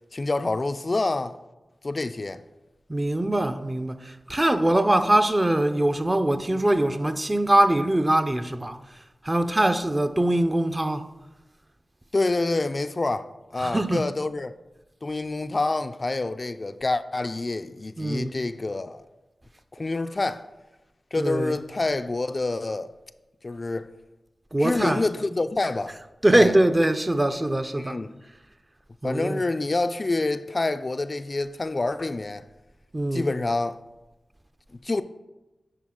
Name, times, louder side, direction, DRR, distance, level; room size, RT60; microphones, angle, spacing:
voice 1, 0.1-1.4 1.8-2.4 12.1-14.5 15.0-19.0 19.7-20.5 21.1-22.9 23.4-23.9 24.6-26.0 26.3-26.5 27.8-28.2 29.0-32.5 33.1-33.8 34.8-35.0, left 2 dB, 45° left, 0.3 m, -27 dB
voice 2, 2.9-8.8 9.2-11.1 13.6-14.1 18.0-18.3 21.1-21.6 24.5-25.0 26.2-28.0 29.0-29.4 32.9-33.3, right 1 dB, 25° right, 0.5 m, -22 dB
10.0 x 4.1 x 3.8 m
cardioid pair, 40°, 0 cm